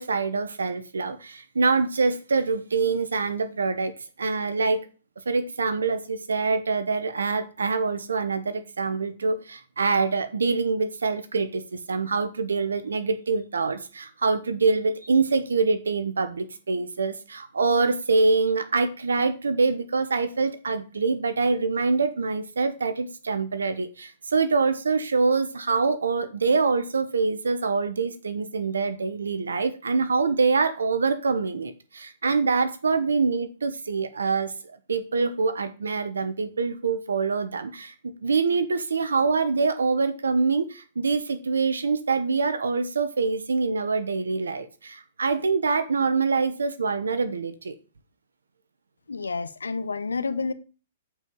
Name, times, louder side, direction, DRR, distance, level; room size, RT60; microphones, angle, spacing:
voice 1, 0.0-3.9 4.2-4.9 5.3-34.5 34.9-37.9 38.2-47.7, right 4 dB, 85° right, 1.1 m, -25 dB
voice 2, 49.1-50.5, left 4 dB, 90° left, 0.9 m, -29 dB
8.9 x 4.9 x 5.4 m
hypercardioid pair, 120°, 0 cm